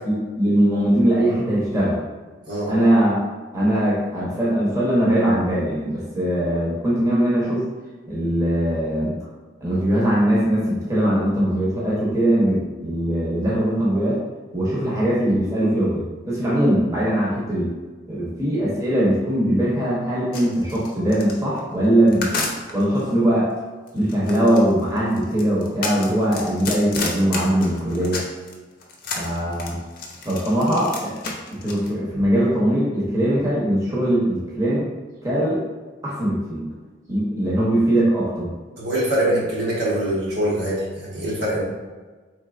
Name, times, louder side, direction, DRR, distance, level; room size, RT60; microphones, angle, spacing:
voice 1, 0.0-2.0 2.7-3.2 3.5-7.7 8.1-9.1 9.6-14.2 14.5-17.7 18.1-22.4 22.7-23.5 23.9-28.2 29.2-29.8 30.2-31.1 31.6-34.9 35.2-35.6 36.0-36.7 37.1-38.6, right 1 dB, 20° right, -7 dB, 0.9 m, -21 dB
sound 1, 20.3-23.0 23.9-28.5 28.8-31.9, left 3 dB, 50° left, 0.6 m, -31 dB
voice 2, 38.8-41.6, right 1 dB, 70° right, -6 dB, 1.3 m, -23 dB
4.3 x 3.3 x 2.5 m, 1.3 s
head